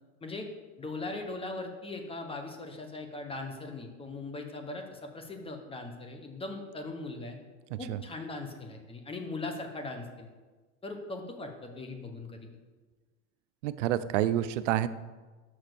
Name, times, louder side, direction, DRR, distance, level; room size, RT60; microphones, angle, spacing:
voice 1, 0.8-7.4 7.8-10.3 10.8-12.5, left 2 dB, 15° left, 4 dB, 1.1 m, -39 dB
voice 2, 13.6-14.9, right 12 dB, 90° right, 14 dB, 0.5 m, -28 dB
6.4 x 5.9 x 6.8 m, 1.3 s
supercardioid pair, 125°, 36 cm